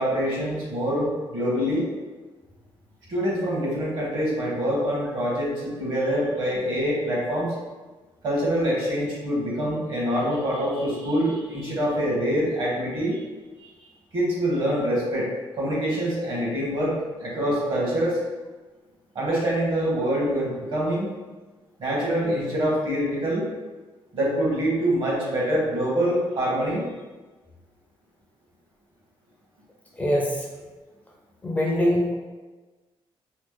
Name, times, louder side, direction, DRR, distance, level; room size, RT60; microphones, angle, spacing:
voice 1, 0.0-1.9 3.1-7.5 8.2-13.2 13.6-13.7 14.1-15.3 15.5-18.2 19.1-21.1 21.8-23.5 24.1-26.8, equal, 55° right, -5 dB, 1.2 m, -25 dB
voice 2, 29.9-30.5 31.4-32.1, equal, 15° left, -3 dB, 0.5 m, -23 dB
3.1 x 2.0 x 3.3 m, 1.2 s
cardioid pair, 135°, 10 cm